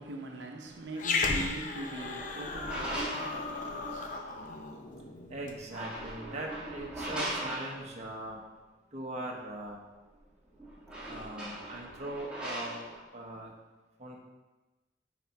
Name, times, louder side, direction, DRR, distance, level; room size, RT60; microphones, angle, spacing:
voice 1, 0.0-4.7, right 2 dB, 85° right, 0.9 m, -42 dB
Growling, 1.0-5.6, left 4 dB, 45° left, 0.7 m, -35 dB
sound 1, 1.8-4.4 5.5-8.2 10.1-10.2 10.5-13.0, right 1 dB, 5° right, 1.6 m, -40 dB
voice 2, 5.3-8.4 8.9-9.8 11.1-12.8 13.1-13.5 14.0-14.2, right 1 dB, 40° right, 1.1 m, -40 dB
8.5 x 4.1 x 4.7 m
head